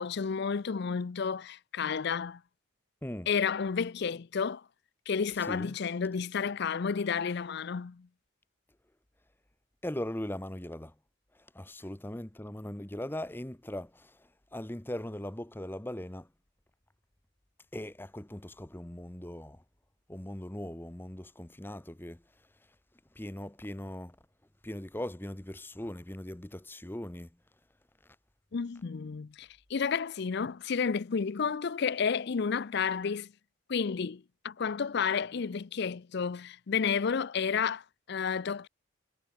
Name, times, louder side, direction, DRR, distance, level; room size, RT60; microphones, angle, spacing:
voice 1, 0.0-2.4 3.3-4.6 5.1-8.1 28.5-33.3 33.7-38.7, left 6 dB, 55° left, 0.5 m, -31 dB
voice 2, 5.4-5.8 9.8-10.9 11.5-16.3 17.7-19.6 20.1-22.2 23.1-24.2 24.6-27.3, left 1 dB, 10° left, 0.9 m, -39 dB
head